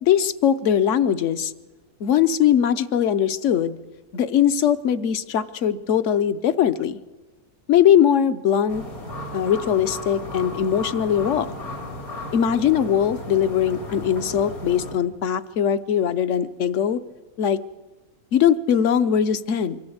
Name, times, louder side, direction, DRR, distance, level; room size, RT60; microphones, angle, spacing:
voice 1, 0.0-1.5 2.0-3.8 4.1-7.0 7.7-8.8 9.3-11.5 12.3-17.0 17.4-17.6 18.3-19.8, left 9 dB, 60° left, 13 dB, 1.1 m, -20 dB
sound 1, 8.7-14.9, left 1 dB, 80° left, 3.5 m, -35 dB
24.0 x 14.0 x 7.9 m, 1.2 s
omnidirectional pair, 1.5 m